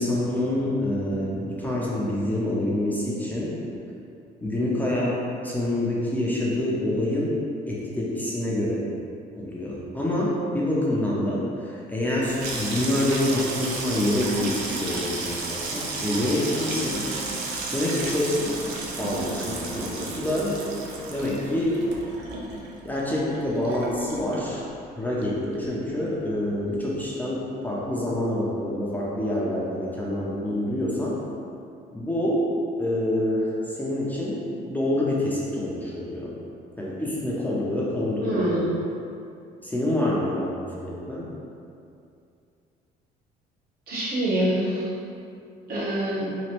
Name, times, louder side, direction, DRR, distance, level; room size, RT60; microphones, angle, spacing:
voice 1, 0.0-3.6 4.4-5.2 5.4-7.3 7.7-8.8 9.4-17.1 17.7-18.3 19.0-20.6 21.1-21.9 22.8-24.7 25.0-31.2 31.9-32.5 32.8-36.3 36.8-38.5 39.6-41.3, left 1 dB, 10° left, -6 dB, 0.5 m, -26 dB
Water tap faucet / Sink (filling or washing), 12.1-24.9 25.2-25.9 26.1-26.5, right 3 dB, 85° right, 0.5 m, -33 dB
voice 2, 38.2-38.7 43.9-44.9 45.7-46.4, right 1 dB, 65° right, -7 dB, 1.0 m, -25 dB
3.0 x 2.4 x 2.9 m, 2.6 s
cardioid pair, 110°, 17 cm